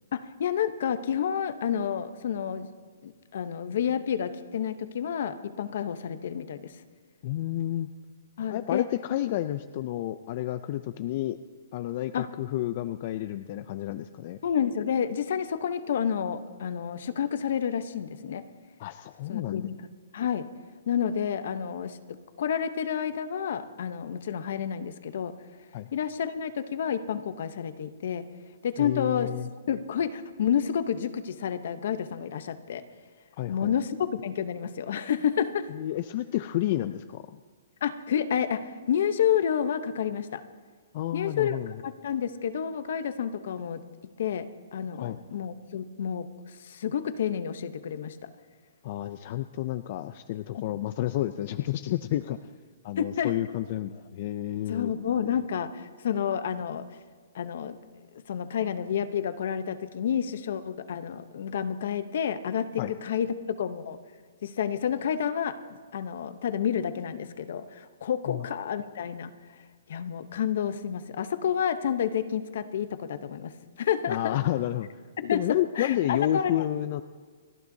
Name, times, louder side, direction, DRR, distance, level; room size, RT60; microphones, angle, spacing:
voice 1, 0.1-2.7 3.0-6.7 8.4-8.9 12.1-12.3 14.4-18.4 19.3-20.5 20.9-25.3 25.9-28.3 28.6-29.3 29.7-32.8 33.5-35.7 37.8-40.4 41.1-43.8 44.2-46.3 46.6-48.3 50.6-50.7 53.0-53.3 54.7-56.8 57.3-57.8 58.3-64.0 64.4-65.6 65.9-69.3 69.9-74.4 75.2-76.6, left 8 dB, 55° left, 12 dB, 0.7 m, -30 dB
voice 2, 7.2-7.9 8.5-11.4 11.7-14.4 18.8-19.7 25.7-25.9 28.8-29.5 33.4-33.7 35.7-37.4 40.9-41.7 45.0-45.2 48.8-52.4 52.8-54.9 62.8-62.9 68.3-68.5 74.1-74.9 75.3-77.0, left 13 dB, 40° left, 11 dB, 0.3 m, -30 dB
29.5 x 11.0 x 2.7 m, 1.5 s
hypercardioid pair, 165°, 0 cm